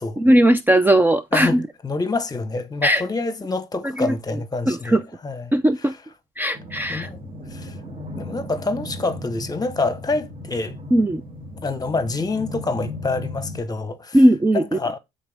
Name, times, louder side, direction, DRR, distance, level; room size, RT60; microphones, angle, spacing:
voice 1, 0.2-1.6 2.8-3.0 4.0-4.1 4.7-5.0 5.5-5.9 6.4-7.1 10.9-11.2 14.1-14.8, right 1 dB, 10° right, 0.5 m, -18 dB
voice 2, 1.8-5.0 5.2-5.4 6.9-7.2 7.5-7.7 8.2-10.7 11.6-14.2 14.5-15.0, left 3 dB, 20° left, 1.3 m, -26 dB
sound 1, 6.5-13.6, left 1 dB, 30° right, 3.0 m, -36 dB
13.0 x 4.3 x 3.5 m
cardioid pair, 110°, 17 cm